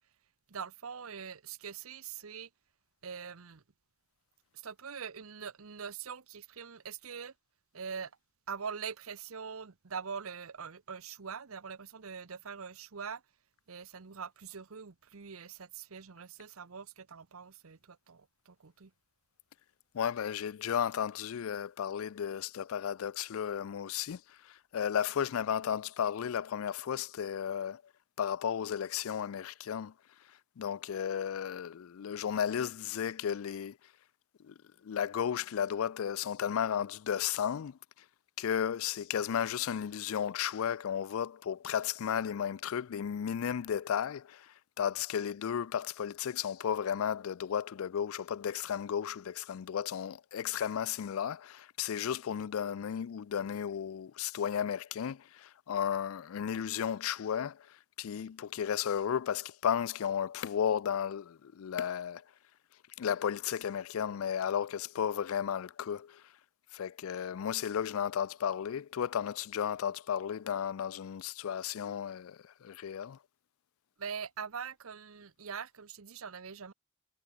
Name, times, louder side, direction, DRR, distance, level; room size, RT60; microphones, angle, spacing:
voice 1, 0.5-2.5 3.0-3.6 4.5-7.3 7.7-8.1 8.5-13.2 13.7-18.9 74.0-76.7, right 6 dB, 70° right, 0.9 m, -43 dB
voice 2, 19.9-27.8 28.2-29.9 30.6-33.8 34.4-34.5 34.8-37.8 38.4-57.6 58.0-62.2 63.0-66.2 66.7-73.2, left 8 dB, 70° left, 0.4 m, -34 dB
head